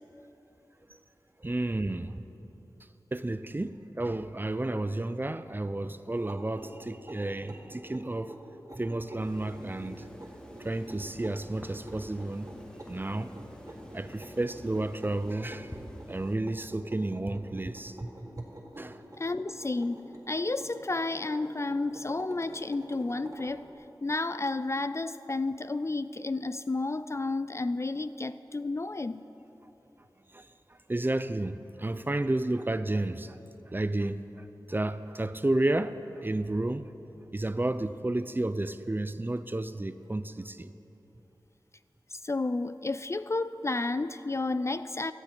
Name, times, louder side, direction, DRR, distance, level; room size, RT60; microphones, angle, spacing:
voice 1, 1.4-2.2 3.1-8.4 8.7-10.1 10.6-12.5 12.9-13.4 13.9-15.7 16.1-18.1 18.4-18.5 18.8-19.0 30.3-30.5 30.9-33.4 33.7-36.9 37.3-40.7, right 2 dB, 25° right, 12 dB, 0.5 m, -32 dB
sound 1, 6.1-23.6, right 1 dB, 40° right, 2.0 m, -48 dB
sound 2, 9.2-16.4, equal, 10° left, 1.4 m, -48 dB
voice 2, 19.2-23.7 24.0-29.2 42.1-45.1, left 3 dB, 35° left, 13 dB, 0.4 m, -31 dB
15.5 x 12.5 x 4.5 m, 3.0 s
wide cardioid pair, 50°, 8 cm